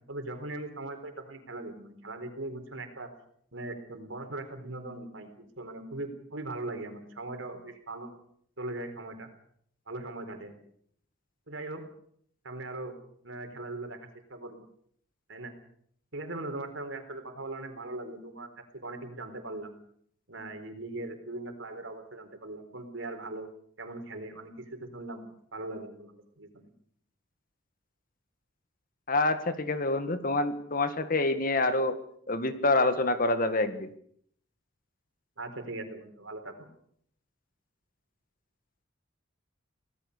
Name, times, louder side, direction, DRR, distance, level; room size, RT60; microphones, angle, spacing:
voice 1, 0.1-3.1 3.5-8.1 8.6-9.3 9.9-10.5 11.5-11.9 12.4-12.9 13.2-14.0 14.3-14.6 15.3-15.5 16.1-18.5 18.7-19.7 20.3-23.5 23.8-25.3 25.5-26.7 35.4-36.7, right 2 dB, 75° right, 7 dB, 4.2 m, -40 dB
voice 2, 29.1-32.0 32.3-33.9, left 2 dB, 45° left, 10 dB, 1.8 m, -27 dB
25.5 x 18.0 x 6.7 m, 0.65 s
head